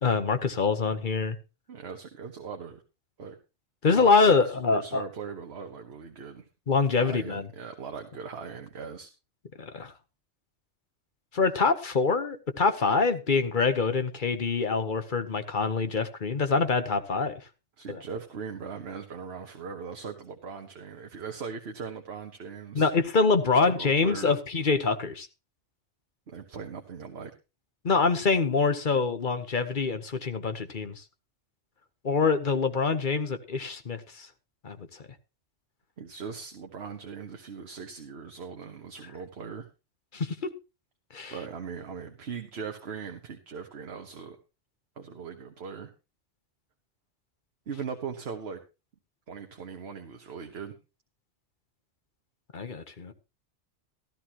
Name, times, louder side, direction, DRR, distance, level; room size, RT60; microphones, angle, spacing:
voice 1, 0.0-1.4 3.8-5.0 6.7-7.5 9.6-9.9 11.3-17.4 17.9-18.0 22.7-25.3 27.8-30.9 32.0-34.3 34.6-34.8 40.1-40.5 41.1-41.3 52.5-53.1, left 4 dB, 45° left, 9 dB, 1.1 m, -25 dB
voice 2, 1.7-2.8 3.2-3.4 3.9-6.5 7.0-9.1 17.8-22.9 23.6-24.3 26.3-27.3 36.0-39.7 41.3-44.4 45.0-45.9 47.7-48.6 49.3-50.8, right 6 dB, 60° right, 5 dB, 1.3 m, -39 dB
13.5 x 13.5 x 2.9 m, 0.29 s
omnidirectional pair, 1.2 m